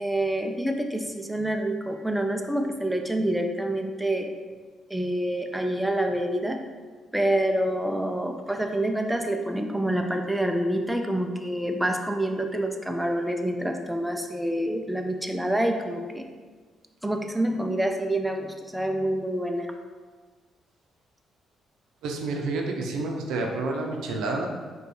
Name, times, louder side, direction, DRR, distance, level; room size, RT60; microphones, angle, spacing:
voice 1, 0.0-4.3 4.9-6.6 7.1-16.3 17.0-19.7, right 1 dB, 5° right, 4 dB, 0.3 m, -27 dB
voice 2, 22.0-24.5, right 3 dB, 85° right, 2 dB, 0.5 m, -29 dB
4.8 x 2.3 x 3.2 m, 1.4 s
cardioid pair, 90°, 0 cm